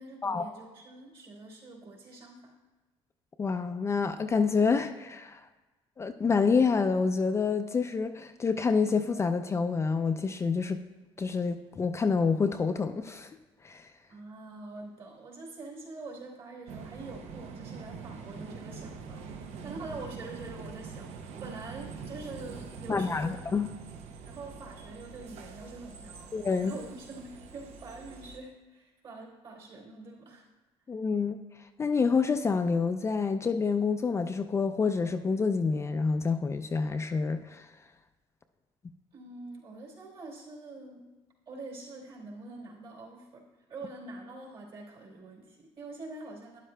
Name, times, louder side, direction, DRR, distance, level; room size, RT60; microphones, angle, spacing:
voice 1, 0.0-2.5 14.1-23.3 24.2-30.4 39.1-41.0 41.5-43.4 43.7-46.6, right 3 dB, 50° right, -2 dB, 3.4 m, -45 dB
voice 2, 3.4-5.4 6.0-10.8 11.2-13.3 13.6-13.9 22.9-23.7 26.3-26.7 30.9-31.4 31.8-37.7, left 5 dB, 25° left, 7 dB, 0.4 m, -27 dB
sound 1, 16.7-28.4, right 5 dB, 75° right, 0.8 m, -44 dB
12.0 x 10.0 x 2.2 m, 1.2 s
cardioid pair, 115°, 11 cm